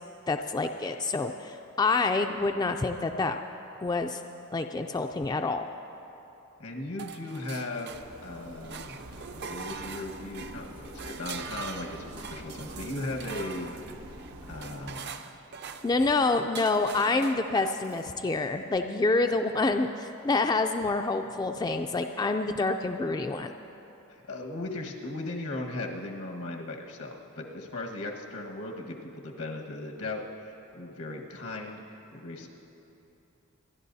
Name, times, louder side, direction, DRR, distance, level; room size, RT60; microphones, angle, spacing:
voice 1, 0.3-3.4 3.8-4.2 4.5-5.7 15.8-23.5, left 3 dB, 20° left, 6 dB, 0.3 m, -27 dB
voice 2, 6.6-13.7 14.5-15.2 24.3-32.5, left 2 dB, 85° left, 1 dB, 1.5 m, -37 dB
sound 1, 7.0-8.3 8.6-18.1, right 5 dB, 50° right, 0.5 m, -43 dB
sound 2, 7.9-15.0, right 1 dB, 85° right, 1.0 m, -46 dB
27.5 x 11.5 x 2.7 m, 3.0 s
head